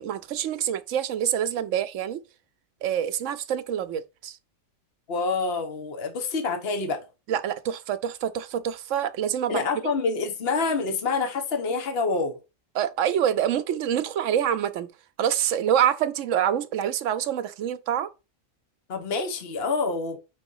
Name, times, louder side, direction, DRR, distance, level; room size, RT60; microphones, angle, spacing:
voice 1, 0.0-2.2 2.8-4.4 7.3-9.6 12.7-14.9 15.2-18.1, right 9 dB, 70° right, 0.9 m, -26 dB
voice 2, 5.1-7.0 9.5-12.3 18.9-20.2, left 4 dB, 50° left, 1.3 m, -27 dB
5.2 x 3.9 x 5.4 m
omnidirectional pair, 1.4 m